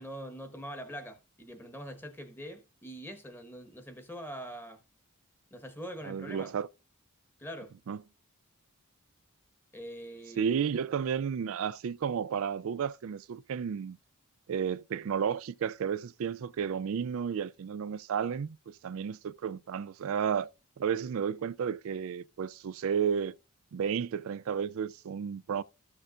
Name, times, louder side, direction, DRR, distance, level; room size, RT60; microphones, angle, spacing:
voice 1, 0.0-4.8 5.5-6.5 7.4-7.7 9.7-10.6, equal, 10° left, 1.2 m, -43 dB
voice 2, 6.0-6.7 7.9-8.0 10.4-14.0 14.5-20.5 20.8-23.4 23.7-25.6, right 7 dB, 65° right, 0.3 m, -32 dB
14.0 x 6.6 x 2.5 m
head